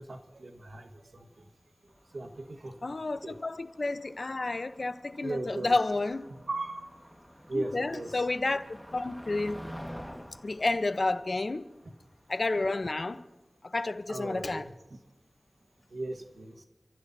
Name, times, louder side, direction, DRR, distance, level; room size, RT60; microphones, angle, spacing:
voice 1, 0.0-1.5 2.1-3.4 5.2-5.7 6.5-7.1 7.5-8.3 14.1-15.0 15.9-16.6, right 2 dB, 80° right, 1.4 m, -38 dB
Motor vehicle (road), 2.0-12.3, equal, ahead, 1.6 m, -49 dB
voice 2, 2.8-6.3 7.5-9.6 10.4-11.7 12.3-13.2 13.6-14.6, left 2 dB, 60° left, 0.8 m, -30 dB
29.0 x 15.0 x 2.7 m
wide cardioid pair, 50°, 0 cm